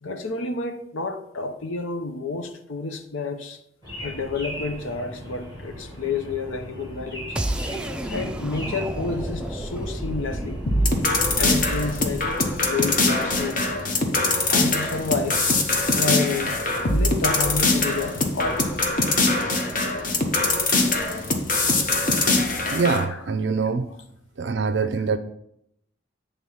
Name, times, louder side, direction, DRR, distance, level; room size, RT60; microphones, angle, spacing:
voice 1, 0.0-3.6 4.0-7.4 8.1-10.6 11.4-13.7 14.1-15.4 15.9-16.6 16.9-18.6 20.4-20.5, left 3 dB, 90° left, 0.8 m, -30 dB
sound 1, 3.8-22.7, equal, 25° left, 2.3 m, -40 dB
sound 2, 7.4-13.3, right 1 dB, 5° right, 0.4 m, -32 dB
sound 3, 10.7-23.0, left 2 dB, 45° left, 0.9 m, -23 dB
voice 2, 22.7-23.9 24.4-25.2, right 4 dB, 65° right, 0.4 m, -24 dB
8.7 x 3.6 x 5.6 m
head